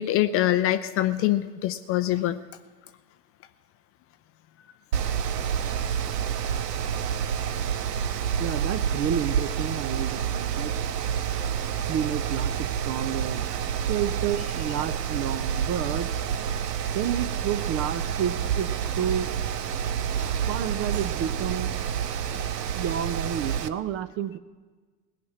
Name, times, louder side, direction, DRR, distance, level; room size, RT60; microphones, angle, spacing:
voice 1, 0.0-2.4, left 13 dB, 30° left, 12 dB, 0.4 m, -24 dB
Mechanical fan, 4.9-23.7, right 8 dB, 90° right, 0.7 m, -28 dB
voice 2, 8.4-11.2 11.8-13.6 13.9-16.1 16.9-19.3 20.5-21.7 22.3-22.4 22.7-24.4, right 10 dB, 30° right, 15 dB, 0.5 m, -30 dB
17.5 x 5.9 x 9.4 m, 1.4 s
hypercardioid pair, 85°, 47 cm